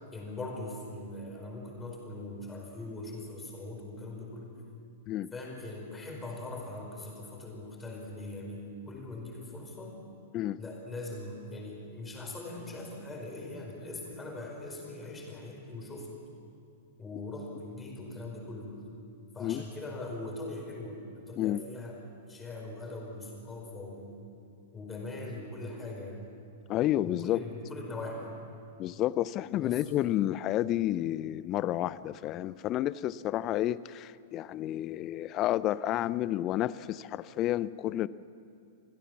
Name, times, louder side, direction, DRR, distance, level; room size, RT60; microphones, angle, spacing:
voice 1, 0.1-4.5 5.3-10.0 10.6-16.1 17.0-18.8 19.3-22.0 22.3-24.2 24.7-26.2 27.0-28.3 29.5-29.8, left 2 dB, 15° left, 0 dB, 4.9 m, -41 dB
voice 2, 26.7-27.4 28.8-38.1, left 13 dB, 30° left, 19 dB, 0.5 m, -30 dB
26.5 x 16.0 x 7.1 m, 2.5 s
figure-of-eight pair, 100°, 0 cm